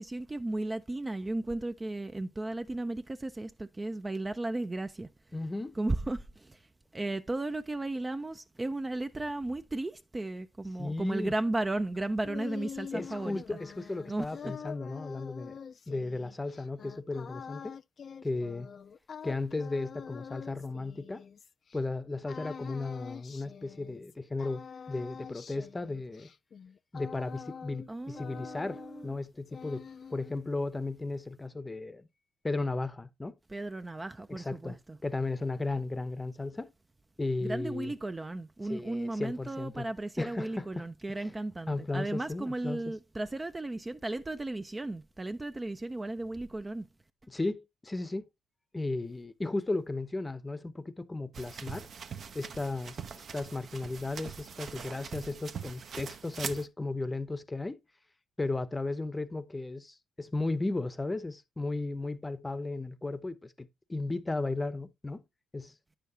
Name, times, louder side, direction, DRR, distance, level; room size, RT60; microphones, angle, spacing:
voice 1, 0.0-5.1 5.8-6.6 6.9-13.6 14.1-14.3 27.9-29.1 33.5-35.0 37.4-46.9, right 2 dB, 20° right, 0.4 m, -35 dB
voice 2, 5.3-5.8 10.8-11.3 12.9-15.6 15.9-17.8 18.2-18.7 19.2-21.2 21.7-26.3 26.9-32.1 32.4-33.3 34.3-36.7 37.2-37.9 38.7-39.9 40.2-40.8 41.7-42.8 47.3-48.2 48.7-51.9 52.3-57.8 58.4-65.2 65.5-65.7, left 2 dB, 20° left, 0.7 m, -35 dB
sound 1, 11.9-21.8 22.3-24.1 24.4-27.9 28.1-29.2 29.5-30.4, left 6 dB, 50° left, 0.4 m, -45 dB
sound 2, 51.3-56.7, right 6 dB, 55° right, 0.7 m, -42 dB
9.1 x 6.7 x 2.7 m
cardioid pair, 90°, 0 cm